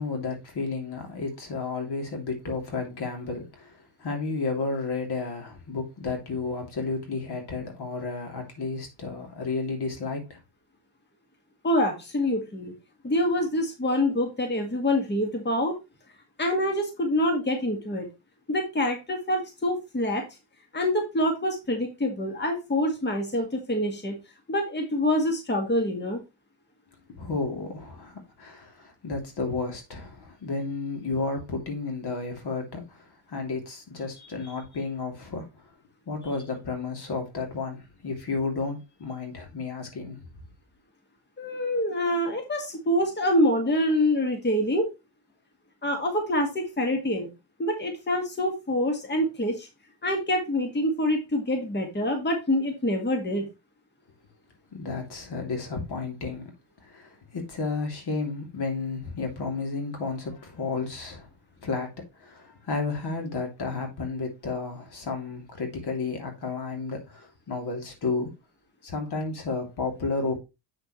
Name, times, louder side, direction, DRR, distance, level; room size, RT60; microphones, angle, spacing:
voice 1, 0.0-10.4 27.2-35.6 36.1-40.2 54.7-56.5 56.8-61.3 61.6-68.3 68.8-70.4, left 4 dB, 60° left, 3.1 m, -32 dB
voice 2, 11.6-12.7 13.0-15.7 16.4-18.1 18.5-20.2 20.7-24.1 24.5-26.2 34.2-34.5 41.4-44.9 45.8-47.3 47.6-49.7 50.0-53.5, left 1 dB, 25° left, 2.0 m, -26 dB
7.7 x 6.8 x 3.2 m
cardioid pair, 105°, 45 cm